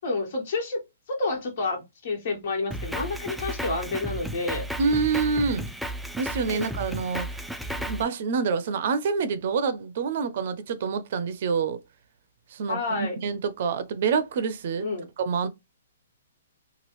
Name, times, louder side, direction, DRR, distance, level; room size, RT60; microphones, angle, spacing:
voice 1, 0.0-0.8 1.1-4.7 6.5-6.7 12.7-13.1 14.8-15.1, left 3 dB, 55° left, 1.6 m, -29 dB
Drum kit, 2.7-8.0, right 1 dB, ahead, 0.3 m, -33 dB
voice 2, 4.8-5.6 6.2-7.4 7.7-11.8 12.5-14.9 15.2-15.5, right 5 dB, 55° right, 0.5 m, -27 dB
3.0 x 2.4 x 3.0 m
hypercardioid pair, 140°, 0 cm